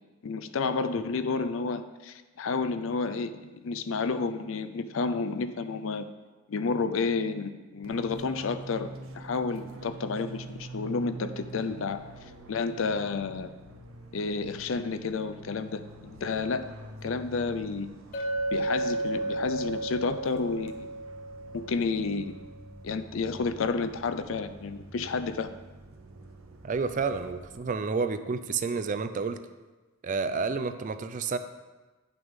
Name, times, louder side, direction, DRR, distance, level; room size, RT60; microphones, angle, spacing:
voice 1, 0.2-6.1 6.5-12.0 12.5-13.5 14.1-16.7 17.0-17.9 18.5-20.9 21.5-22.3 22.8-25.5, left 4 dB, 70° left, 11 dB, 0.5 m, -30 dB
Fixed-wing aircraft airplane, 7.8-27.6, right 2 dB, 75° right, 0.8 m, -46 dB
Chink clink, 18.1-22.3, right 2 dB, 40° left, 0.8 m, -33 dB
voice 2, 26.6-29.4 30.0-31.4, right 4 dB, 40° right, 10 dB, 0.4 m, -30 dB
9.7 x 6.0 x 3.6 m, 1.2 s
head